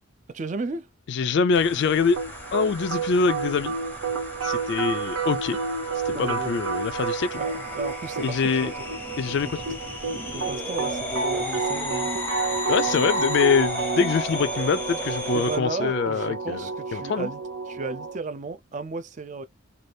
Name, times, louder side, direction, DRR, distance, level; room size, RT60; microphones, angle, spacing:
voice 1, 0.3-0.9 6.1-6.6 7.4-8.9 9.4-9.5 10.3-12.3 15.3-19.5, right 3 dB, 35° right, 0.3 m, -34 dB
voice 2, 1.1-2.2 2.5-3.7 4.4-5.6 6.1-7.4 8.2-8.7 9.2-9.6 12.7-17.3, left 5 dB, 50° left, 0.3 m, -24 dB
sound 1, 1.5-15.6, left 1 dB, 10° left, 0.6 m, -35 dB
sound 2, 2.2-18.2, right 4 dB, 75° right, 0.8 m, -30 dB
2.6 x 2.4 x 3.2 m
head